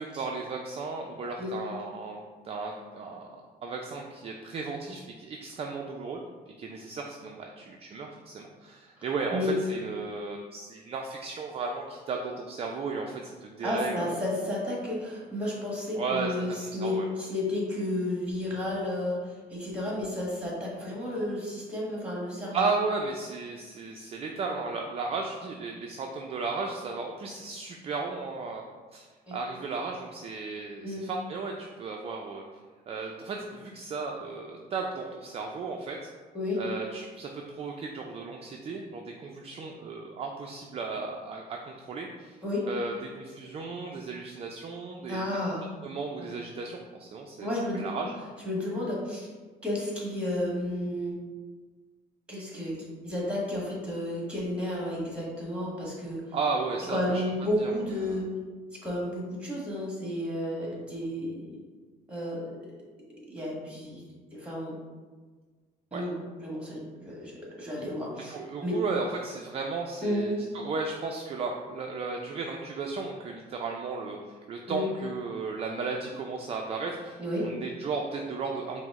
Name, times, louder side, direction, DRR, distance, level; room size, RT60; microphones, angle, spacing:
voice 1, 0.0-3.3 3.6-6.2 6.6-14.1 15.9-17.1 22.5-32.4 32.9-36.1 36.6-42.4 42.7-45.2 45.8-47.5 47.7-48.1 56.3-57.2 57.6-57.7 58.0-58.2 65.9-66.1 68.3-78.8, right 4 dB, 35° right, 1 dB, 0.4 m, -35 dB
voice 2, 13.6-22.6 29.3-29.4 30.8-31.0 36.3-36.6 42.4-42.7 45.1-45.7 46.2-46.3 47.4-48.0 48.4-49.3 49.6-51.2 52.3-56.2 56.8-58.3 58.7-61.5 62.1-62.5 63.3-64.0 64.3-64.8 65.9-68.8 70.0-70.3 74.7-74.9 77.2-77.5, left 1 dB, 5° right, -4 dB, 1.3 m, -32 dB
4.9 x 2.0 x 3.5 m, 1.4 s
cardioid pair, 110°, 17 cm